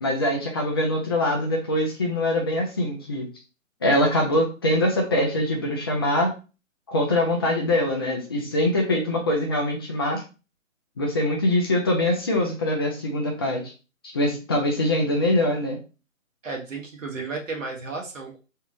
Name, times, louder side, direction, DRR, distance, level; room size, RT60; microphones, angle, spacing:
voice 1, 0.0-3.3 3.8-6.3 6.9-10.2 11.0-13.7 14.1-15.8, left 1 dB, 20° left, 0 dB, 0.6 m, -23 dB
voice 2, 16.4-18.4, right 3 dB, 70° right, 1 dB, 1.3 m, -33 dB
3.4 x 3.4 x 3.1 m, 0.32 s
figure-of-eight pair, 145°, 40 cm